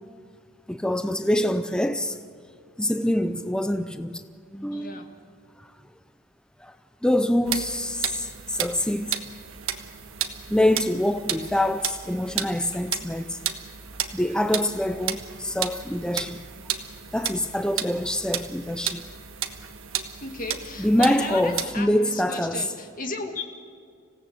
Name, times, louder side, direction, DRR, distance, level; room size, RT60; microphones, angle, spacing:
voice 1, 0.7-2.2 2.8-4.2 4.5-5.1 6.6-6.7 7.0-9.2 10.5-13.4 14.1-16.4 17.1-19.0 20.8-22.6, left 1 dB, 5° left, 0.5 m, -25 dB
voice 2, 4.7-5.1 20.2-23.4, left 3 dB, 40° left, 2.2 m, -35 dB
sound 1, 7.4-21.6, right 10 dB, 70° right, 1.4 m, -33 dB
26.5 x 17.0 x 7.8 m
head